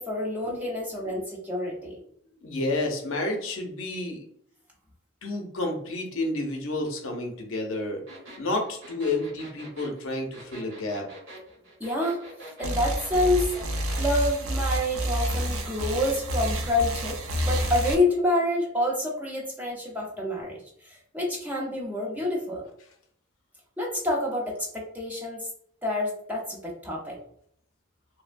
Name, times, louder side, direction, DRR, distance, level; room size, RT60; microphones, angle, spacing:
voice 1, 0.0-2.0 11.8-12.2 12.6-13.5 14.0-22.6 23.8-25.5 25.8-27.2, left 1 dB, 10° right, -3 dB, 0.6 m, -28 dB
voice 2, 2.4-4.2 5.2-8.0 8.4-11.1, left 2 dB, 75° left, 2 dB, 0.6 m, -30 dB
sound 1, 8.1-14.1, right 1 dB, 65° right, 1.2 m, -44 dB
sound 2, 12.6-17.9, right 1 dB, 80° right, 0.5 m, -29 dB
3.2 x 2.1 x 2.5 m, 0.66 s
head